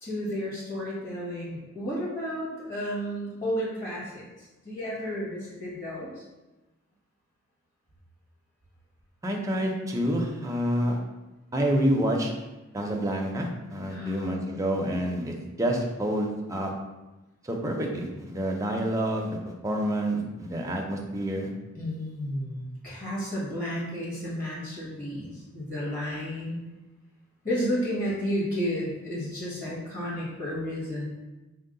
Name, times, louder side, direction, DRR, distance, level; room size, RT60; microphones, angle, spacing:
voice 1, 0.0-6.1 13.9-14.3 21.7-26.6 27.4-31.1, equal, 40° left, -7 dB, 1.4 m, -32 dB
voice 2, 9.2-11.0 11.5-12.3 12.7-16.7 17.4-19.4 19.6-21.5, equal, 15° right, 1 dB, 0.5 m, -28 dB
4.6 x 2.0 x 3.8 m, 1.1 s
head